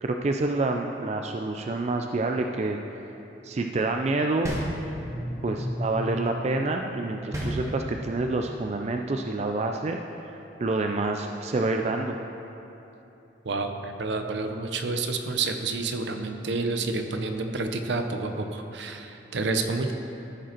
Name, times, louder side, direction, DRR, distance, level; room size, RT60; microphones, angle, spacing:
voice 1, 0.0-2.8 3.4-4.6 5.4-10.0 10.6-12.1, right 2 dB, 35° right, 3 dB, 0.3 m, -27 dB
sound 1, 4.4-5.4 7.3-8.2, equal, 15° right, 1.2 m, -32 dB
sound 2, 4.9-8.6, equal, 10° left, 1.0 m, -36 dB
voice 2, 13.4-19.9, right 3 dB, 70° right, 6 dB, 0.6 m, -29 dB
14.0 x 5.1 x 4.4 m, 3.0 s
head